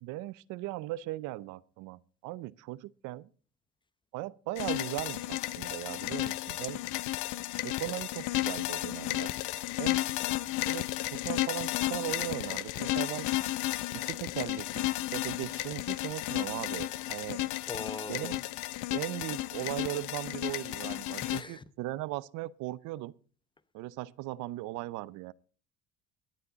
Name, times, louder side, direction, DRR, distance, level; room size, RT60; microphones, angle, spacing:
voice 1, 0.0-3.3 4.1-6.8 7.6-9.4 9.8-10.0 10.7-13.3 13.9-17.4 18.1-18.4 18.9-23.1 23.7-25.3, right 16 dB, 75° right, 0.7 m, -38 dB
sound 1, 4.6-21.4, left 17 dB, 75° left, 0.7 m, -33 dB
voice 2, 17.7-18.4 21.2-21.6, left 3 dB, 15° left, 0.8 m, -40 dB
23.0 x 8.6 x 3.9 m
cardioid pair, 110°, 30 cm